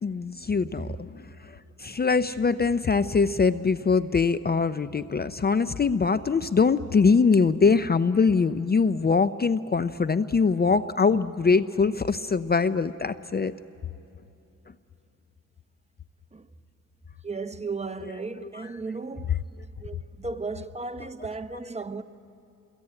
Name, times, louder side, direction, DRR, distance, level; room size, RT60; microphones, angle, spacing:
voice 1, 0.0-13.6 18.0-18.7 21.0-21.1, left 5 dB, 30° left, 0.5 m, -23 dB
voice 2, 17.2-19.4 19.8-22.0, right 3 dB, 20° right, 0.8 m, -35 dB
28.5 x 22.5 x 8.8 m
cardioid pair, 90°, 33 cm